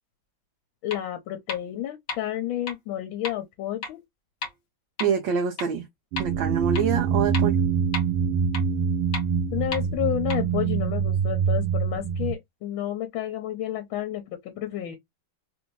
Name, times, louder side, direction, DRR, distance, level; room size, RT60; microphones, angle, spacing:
voice 1, 0.8-4.0 9.5-14.9, left 12 dB, 75° left, 1.4 m, -30 dB
sound 1, 0.9-1.0 1.5-1.6 2.1-2.2 2.7-2.8 3.2-3.3 3.8-3.9 4.4-4.5 5.0-5.1 5.6-5.7 6.2-6.3 6.7-6.8 7.3-7.4 7.9-8.0 8.5-8.6 9.1-9.2 9.7-9.8 10.3-10.4, left 4 dB, 50° left, 1.1 m, -31 dB
voice 2, 5.0-5.8 6.2-7.6, right 7 dB, 70° right, 1.3 m, -25 dB
sound 2, 6.1-12.3, right 6 dB, 85° right, 1.6 m, -25 dB
3.5 x 2.6 x 2.9 m
omnidirectional pair, 2.3 m